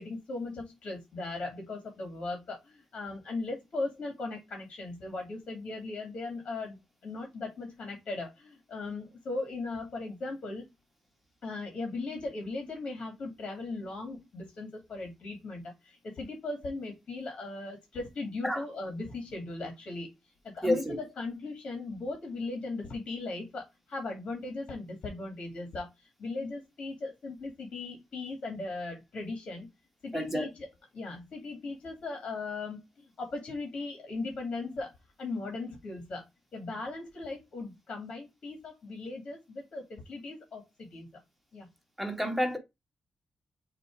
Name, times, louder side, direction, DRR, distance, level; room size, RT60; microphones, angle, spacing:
voice 1, 0.0-10.7 11.4-29.7 30.0-30.7 30.9-34.9 35.2-36.3 36.5-41.2 41.5-41.7, left 3 dB, 55° left, 2.3 m, -38 dB
voice 2, 20.6-21.0 30.1-30.5 42.0-42.6, equal, 5° right, 1.8 m, -29 dB
6.7 x 3.2 x 4.7 m
wide cardioid pair, 135°, 2 cm